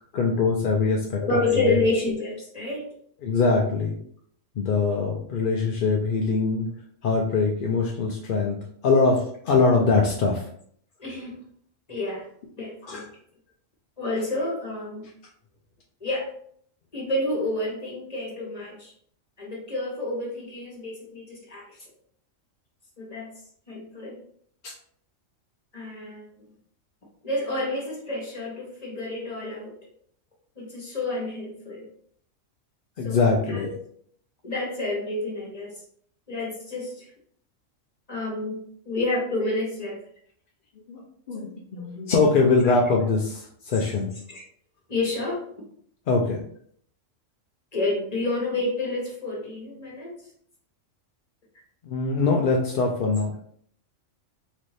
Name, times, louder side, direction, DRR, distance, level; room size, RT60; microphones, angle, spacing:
voice 1, 0.1-1.8 3.2-4.0 4.6-6.7 7.0-10.5 12.8-13.0 24.6-24.7 33.0-33.7 40.9-41.0 41.3-44.1 46.1-46.4 51.8-53.3, left 4 dB, 60° left, 0 dB, 0.5 m, -23 dB
voice 2, 1.2-2.9 11.0-11.4 11.9-12.3 12.6-13.0 14.0-15.1 16.0-16.3 16.9-18.9 19.4-21.9 23.0-23.3 23.7-24.2 25.7-26.2 27.2-29.8 30.6-31.9 33.0-33.2 33.5-33.7 34.4-35.8 36.3-37.1 38.1-38.6 38.8-40.0 41.8-41.9 42.9-43.0 44.3-44.4 44.9-45.4 47.7-50.2, left 2 dB, 30° left, -3 dB, 1.2 m, -29 dB
4.1 x 2.6 x 3.2 m, 0.62 s
omnidirectional pair, 1.3 m